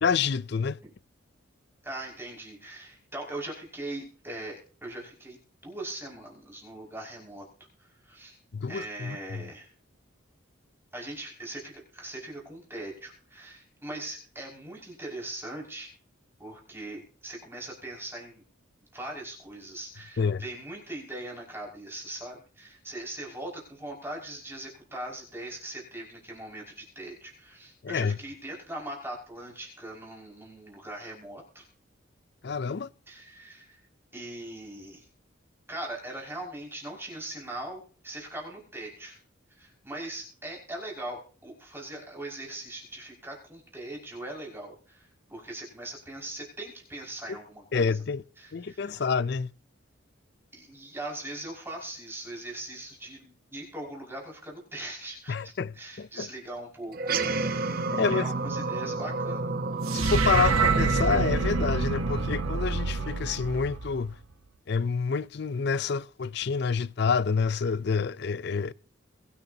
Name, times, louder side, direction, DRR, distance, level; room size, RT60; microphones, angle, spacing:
voice 1, 0.0-0.8 8.5-9.4 20.2-20.4 27.8-28.2 32.4-32.9 47.3-47.4 47.7-48.2 48.5-49.5 55.3-56.3 57.9-58.3 59.9-64.1 64.7-68.7, left 5 dB, 55° left, 0.4 m, -28 dB
voice 2, 1.8-5.4 5.6-7.4 7.8-8.4 8.7-9.7 10.9-15.9 16.4-18.4 18.9-31.7 33.1-33.8 34.1-35.1 35.7-39.2 39.5-49.0 50.5-59.6, right 1 dB, 10° right, 5.8 m, -40 dB
sound 1, 56.9-63.7, right 3 dB, 45° right, 1.0 m, -30 dB
sound 2, 59.9-64.2, right 4 dB, 90° right, 0.8 m, -27 dB
22.5 x 9.8 x 2.8 m
head